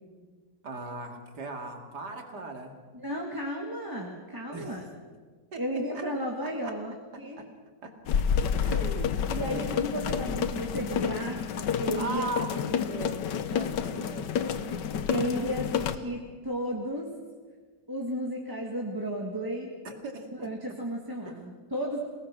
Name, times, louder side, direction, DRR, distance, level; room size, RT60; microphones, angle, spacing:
voice 1, 0.6-2.7 4.5-4.9 5.5-5.6 5.9-6.0 6.4-6.7 7.1-7.5 7.8-8.0 8.6-9.8 11.9-14.6 19.8-20.7 21.2-21.3, right 2 dB, 70° right, 3 dB, 3.0 m, -39 dB
voice 2, 2.9-4.8 5.6-7.4 9.3-12.3 15.1-17.1 17.9-19.7 20.4-22.0, equal, 10° right, -1 dB, 1.8 m, -33 dB
sound 1, 8.1-16.0, left 7 dB, 85° left, 1.6 m, -29 dB
28.0 x 18.5 x 6.0 m, 1.5 s
omnidirectional pair, 1.9 m